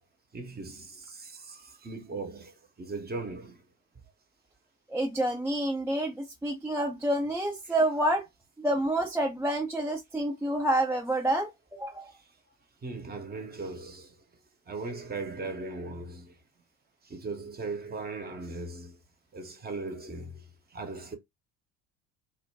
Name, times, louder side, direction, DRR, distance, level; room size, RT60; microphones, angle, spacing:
voice 1, 0.3-3.6 12.8-14.1 14.7-16.3 17.0-19.0 19.3-20.4 20.7-21.2, right 3 dB, 20° right, 0.8 m, -38 dB
voice 2, 4.9-8.3 8.6-12.1, right 1 dB, 5° right, 0.4 m, -28 dB
2.5 x 2.2 x 3.3 m
hypercardioid pair, 60°, 42 cm